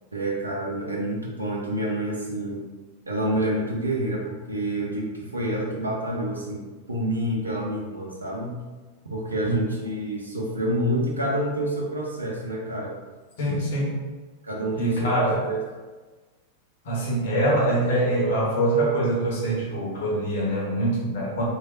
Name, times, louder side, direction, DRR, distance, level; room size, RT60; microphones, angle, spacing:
voice 1, 0.1-2.6 3.1-8.6 9.1-12.9 14.4-15.6, right 1 dB, 80° right, -2 dB, 0.5 m, -28 dB
voice 2, 13.4-14.1 14.8-15.4 16.8-21.4, right 1 dB, 55° left, -5 dB, 1.0 m, -24 dB
3.1 x 2.4 x 2.5 m, 1.3 s
figure-of-eight pair, 90°, 0 cm